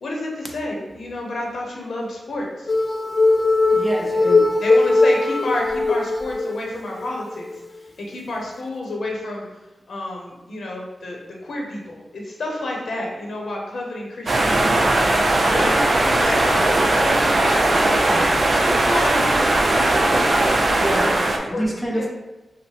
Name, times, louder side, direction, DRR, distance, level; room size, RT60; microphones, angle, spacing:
voice 1, 0.0-2.7 4.1-4.3 4.6-9.5 9.9-14.8 15.4-20.1 20.4-21.1 21.5-21.7 22.0-22.1, left 1 dB, 80° left, -1 dB, 0.7 m, -30 dB
sound 1, 2.7-6.5 7.0-7.1 7.5-7.6, left 3 dB, 30° left, 0.4 m, -19 dB
voice 2, 3.7-4.5 20.8-22.1, equal, ahead, -1 dB, 0.7 m, -27 dB
sound 2, 14.3-21.4, right 2 dB, 50° right, 0.5 m, -18 dB
5.3 x 2.1 x 3.2 m, 1.0 s
wide cardioid pair, 95°, 0 cm